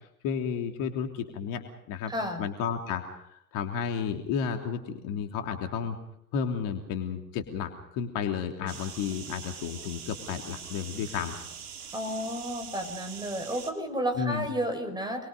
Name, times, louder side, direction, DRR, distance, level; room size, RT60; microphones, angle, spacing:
voice 1, 0.2-1.6 1.9-2.1 2.4-6.0 6.3-11.4 14.2-14.5, left 7 dB, 45° left, 4 dB, 3.3 m, -32 dB
voice 2, 2.1-2.5 11.9-15.3, equal, 10° right, 6 dB, 5.6 m, -32 dB
sound 1, 8.7-13.7, right 7 dB, 70° right, 3.8 m, -43 dB
28.0 x 22.5 x 5.3 m, 0.73 s
figure-of-eight pair, 90°, 46 cm